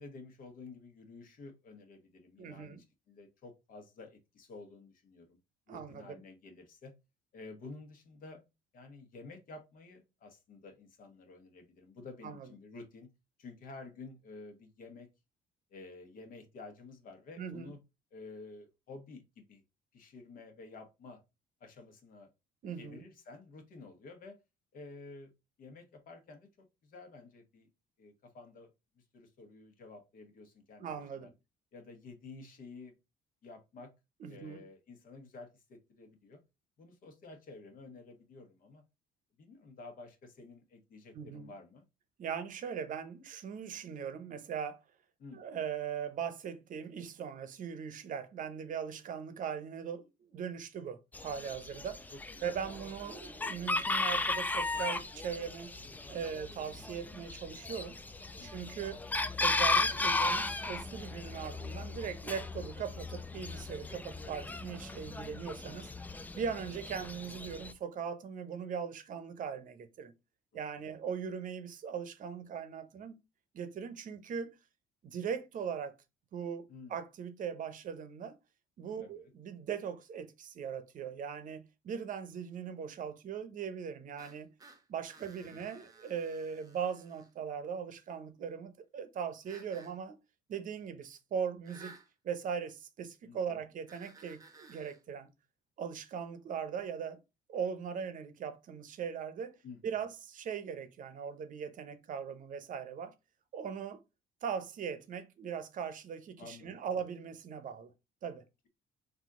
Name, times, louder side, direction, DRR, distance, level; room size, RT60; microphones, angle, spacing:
voice 1, 0.0-5.4 5.7-6.9 7.3-8.4 8.7-13.1 13.4-15.1 15.7-17.8 18.1-19.6 19.9-21.2 21.6-22.3 22.8-24.4 24.7-25.3 25.6-27.7 28.0-31.3 31.7-32.9 33.4-33.9 34.3-36.4 36.8-38.8 39.4-41.8 45.2-45.4 52.1-52.5 58.4-58.8 66.7-66.8 76.7-77.0 79.0-79.3 85.4-85.6 93.2-93.6 99.6-100.0 106.4-106.7, left 3 dB, 55° left, 1.3 m, -51 dB
voice 2, 2.4-2.8 5.7-6.2 12.2-12.5 17.4-17.7 22.6-23.0 30.8-31.3 34.2-34.6 41.1-41.5 42.2-44.8 45.3-52.0 52.4-55.7 56.1-58.0 58.4-59.0 59.4-65.9 66.3-70.1 70.5-73.2 73.5-74.6 75.0-75.9 76.3-76.6 76.9-78.3 78.8-84.5 84.9-90.2 90.5-91.9 92.2-95.3 95.8-97.2 97.5-99.6 99.8-103.1 103.5-104.0 104.4-107.9 108.2-108.4, right 7 dB, 50° right, 0.7 m, -39 dB
Chicken rooster, 51.1-67.7, left 2 dB, 10° left, 0.3 m, -36 dB
sound 1, 84.2-87.3 89.4-89.9 91.6-92.1 93.9-95.0, right 4 dB, 20° right, 0.8 m, -56 dB
4.1 x 2.7 x 3.6 m
cardioid pair, 110°, 17 cm